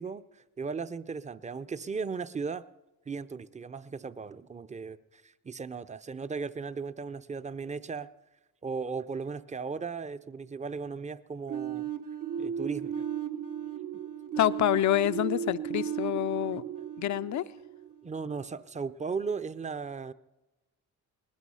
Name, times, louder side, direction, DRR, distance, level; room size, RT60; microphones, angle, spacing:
voice 1, 0.0-2.7 3.1-8.1 8.6-11.9 12.4-13.1 18.0-20.1, right 5 dB, 20° right, 14 dB, 0.6 m, -36 dB
sound 1, 11.5-18.3, right 9 dB, 65° right, 1.3 m, -35 dB
voice 2, 14.4-16.6 17.0-17.4, left 12 dB, 55° left, 14 dB, 0.6 m, -27 dB
19.5 x 13.0 x 5.6 m, 1.0 s
cardioid pair, 70°, 34 cm